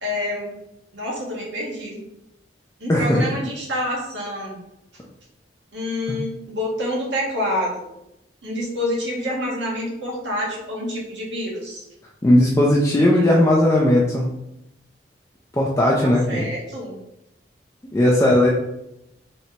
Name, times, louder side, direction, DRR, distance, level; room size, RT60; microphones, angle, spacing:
voice 1, 0.0-0.6 0.9-2.0 2.8-4.6 5.7-7.8 8.4-11.8 16.0-17.0, left 1 dB, 85° right, -3 dB, 1.3 m, -27 dB
voice 2, 2.9-3.2 12.2-14.3 15.5-16.5 17.9-18.5, left 1 dB, 15° left, -3 dB, 0.4 m, -17 dB
4.2 x 3.2 x 2.9 m, 0.88 s
head